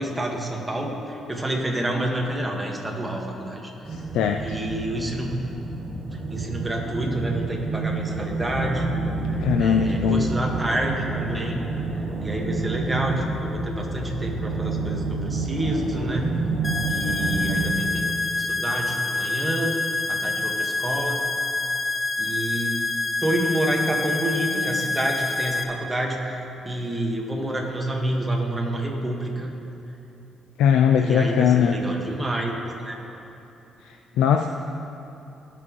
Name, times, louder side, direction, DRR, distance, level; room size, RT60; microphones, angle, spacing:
voice 1, 0.0-3.7 4.4-5.4 6.3-8.9 9.6-11.6 12.2-16.4 16.9-18.0 18.4-19.8 20.1-21.3 22.2-22.9 23.2-29.5 31.0-32.6 32.8-33.0, right 1 dB, 15° right, -1 dB, 1.6 m, -28 dB
sound 1, 3.8-17.7, right 3 dB, 40° right, 1.2 m, -29 dB
voice 2, 3.9-4.6 9.4-10.3 30.6-31.8 33.8-34.5, left 8 dB, 90° left, 4 dB, 0.4 m, -20 dB
sound 2, 16.6-25.6, left 3 dB, 15° left, 0.8 m, -27 dB
18.5 x 6.1 x 3.1 m, 2.9 s
cardioid pair, 90°, 0 cm